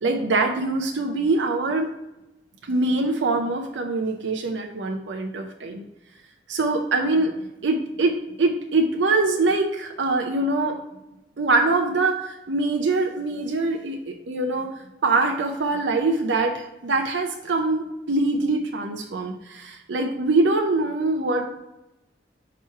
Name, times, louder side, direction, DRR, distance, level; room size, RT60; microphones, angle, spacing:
voice 1, 0.0-1.9 2.6-5.8 6.5-7.3 7.6-10.8 11.4-14.7 15.0-21.6, right 3 dB, 90° right, 2 dB, 0.6 m, -23 dB
5.9 x 3.1 x 5.6 m, 0.93 s
head